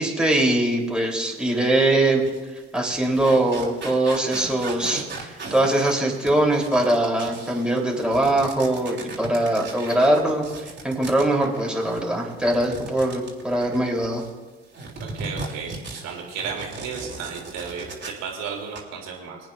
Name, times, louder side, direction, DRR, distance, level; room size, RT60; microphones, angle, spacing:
voice 1, 0.0-2.2 2.7-14.2, right 1 dB, 5° right, -2 dB, 3.8 m, -22 dB
sound 1, 1.4-1.5 2.1-14.3 14.7-18.3 18.6-18.8, right 3 dB, 35° right, 3.3 m, -38 dB
voice 2, 15.0-15.7 16.0-19.4, right 6 dB, 60° right, 0 dB, 3.3 m, -33 dB
25.0 x 9.2 x 2.7 m, 1.3 s
figure-of-eight pair, 55°, 31 cm